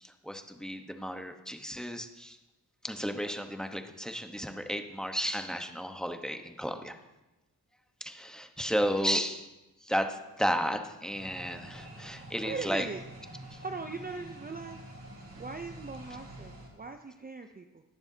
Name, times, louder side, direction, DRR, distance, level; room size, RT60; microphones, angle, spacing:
voice 1, 0.0-2.4 2.8-6.9 8.0-9.5 9.8-12.9 13.5-13.6, equal, ahead, 5 dB, 1.1 m, -33 dB
sound 1, 11.1-16.7, right 1 dB, 45° right, 4.4 m, -47 dB
voice 2, 12.4-13.0 13.6-14.8 15.4-17.8, right 4 dB, 25° right, 6 dB, 0.6 m, -40 dB
20.5 x 6.9 x 2.8 m, 1.0 s
cardioid pair, 55°, 37 cm